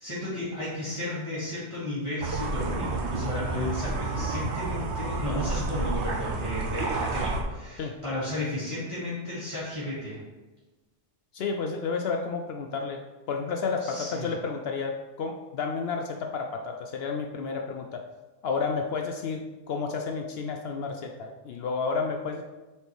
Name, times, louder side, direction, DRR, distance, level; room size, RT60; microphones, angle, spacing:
voice 1, 0.0-10.2 13.8-14.3, left 1 dB, 25° right, -12 dB, 2.3 m, -33 dB
sound 1, 2.2-7.4, right 3 dB, 75° right, 1.1 m, -30 dB
voice 2, 11.3-13.0 13.3-18.0 18.4-22.4, left 5 dB, 65° left, 3 dB, 0.7 m, -31 dB
8.4 x 4.4 x 3.1 m, 1.1 s
omnidirectional pair, 1.2 m